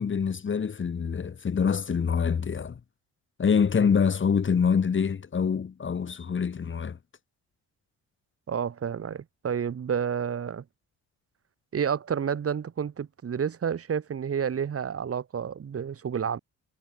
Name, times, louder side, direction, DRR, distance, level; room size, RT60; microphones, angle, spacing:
voice 1, 0.0-2.8 3.4-7.0, left 6 dB, 40° left, 3.0 m, -25 dB
voice 2, 8.5-10.6 11.7-16.4, right 7 dB, 50° right, 5.4 m, -30 dB
cardioid pair, 90°, 30 cm